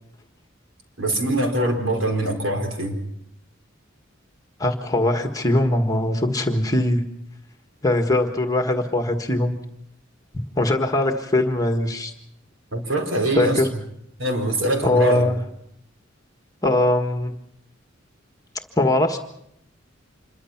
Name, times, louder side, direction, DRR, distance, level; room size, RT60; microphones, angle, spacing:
voice 1, 1.0-3.0 12.7-13.7 14.2-15.3, right 1 dB, 70° right, 4 dB, 4.4 m, -23 dB
voice 2, 4.6-7.0 7.8-9.5 10.3-12.1 13.4-13.7 14.8-15.4 16.6-17.3 18.8-19.2, left 1 dB, 20° left, 4 dB, 1.6 m, -21 dB
26.5 x 22.5 x 5.9 m, 0.74 s
head